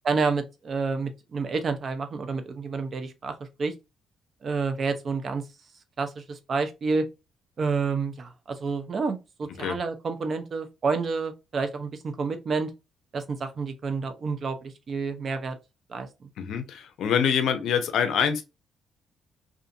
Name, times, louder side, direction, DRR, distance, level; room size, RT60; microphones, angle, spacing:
voice 1, 0.0-3.7 4.4-5.4 6.0-7.1 7.6-12.7 13.1-15.6 15.9-16.3, right 4 dB, 45° right, 0.6 m, -29 dB
voice 2, 16.4-18.4, left 7 dB, 75° left, 0.5 m, -25 dB
2.5 x 2.5 x 2.5 m
cardioid pair, 90°, 0 cm